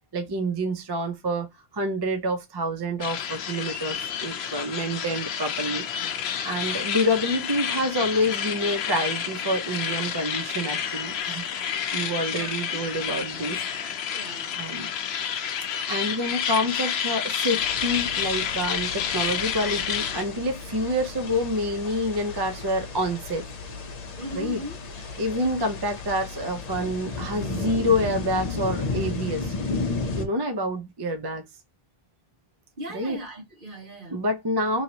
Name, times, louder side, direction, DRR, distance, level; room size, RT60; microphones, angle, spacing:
voice 1, 0.1-1.5 1.7-5.8 6.4-13.6 14.6-14.9 15.9-23.4 24.3-24.6 25.2-29.5 30.2-31.4 32.9-33.2 34.1-34.8, equal, 35° right, 0.4 m, -27 dB
sound 1, 3.0-20.2, left 8 dB, 85° left, 0.8 m, -30 dB
voice 2, 13.6-14.6 24.2-24.8 32.8-34.2, right 1 dB, 55° right, 1.5 m, -39 dB
sound 2, 17.6-30.2, left 3 dB, 45° left, 0.7 m, -34 dB
3.0 x 2.8 x 2.7 m
omnidirectional pair, 1.0 m